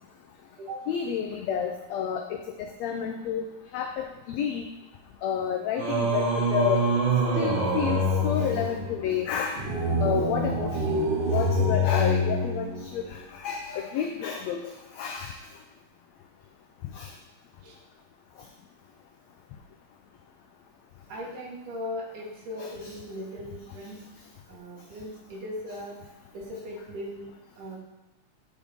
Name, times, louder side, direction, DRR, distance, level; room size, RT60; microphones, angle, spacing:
voice 1, 0.9-2.2 2.8-3.4 3.7-4.7 5.2-6.9 7.3-9.6 10.0-15.4 16.9-17.1 22.6-22.9, left 8 dB, 90° left, 3 dB, 1.5 m, -30 dB
Singing, 5.8-13.1, equal, 45° right, 1.8 m, -26 dB
voice 2, 21.1-24.0 24.5-25.9 26.3-27.3 27.6-27.8, left 1 dB, 80° right, -4 dB, 3.1 m, -38 dB
8.8 x 5.0 x 3.5 m, 0.98 s
omnidirectional pair, 3.6 m